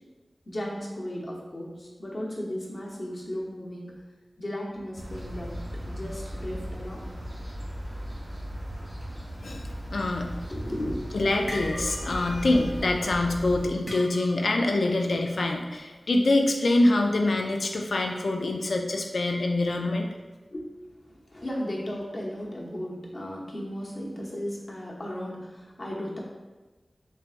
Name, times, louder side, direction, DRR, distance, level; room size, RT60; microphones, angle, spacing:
voice 1, 0.5-3.9 4.4-5.5 5.9-7.1 10.5-11.0 20.5-20.7 21.0-26.2, equal, 55° left, -3 dB, 1.0 m, -35 dB
sound 1, 5.0-13.7, equal, 75° right, 1.0 m, -37 dB
voice 2, 9.4-10.3 11.1-20.1, left 2 dB, 85° left, 2 dB, 0.4 m, -25 dB
sound 2, 11.5-12.3 12.6-12.8 13.9-14.6, equal, 20° left, 0.7 m, -38 dB
4.5 x 3.4 x 2.5 m, 1.2 s
cardioid pair, 45°, 0 cm